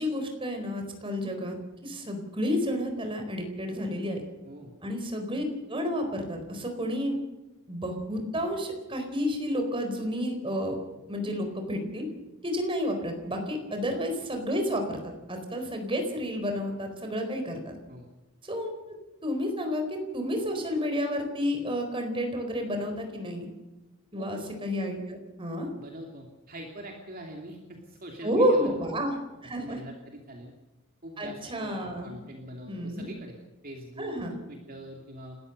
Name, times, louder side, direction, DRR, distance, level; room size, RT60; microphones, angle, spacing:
voice 1, 0.0-1.5 1.8-4.2 4.8-7.2 7.7-10.7 11.1-12.1 12.4-17.7 18.4-18.9 19.2-23.5 24.1-25.7 28.2-29.1 29.4-29.8 31.2-32.1 32.7-33.1 34.0-34.3, equal, 25° right, 4 dB, 4.3 m, -30 dB
voice 2, 24.1-24.5 25.7-28.7 29.6-30.5 31.0-33.3 33.6-35.4, right 1 dB, 45° right, 1 dB, 2.7 m, -43 dB
29.5 x 13.5 x 6.7 m, 1.1 s
head